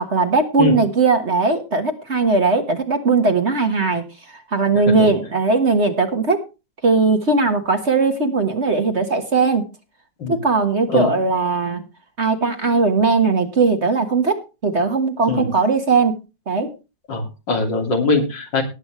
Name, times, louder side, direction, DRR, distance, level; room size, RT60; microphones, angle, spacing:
voice 1, 0.0-6.4 6.8-9.6 10.3-11.9 12.2-16.2 16.5-16.7, right 4 dB, 40° right, 6 dB, 1.6 m, -19 dB
voice 2, 17.1-18.6, left 3 dB, 75° left, 3 dB, 3.4 m, -21 dB
19.0 x 8.3 x 3.1 m, 0.29 s
omnidirectional pair, 2.0 m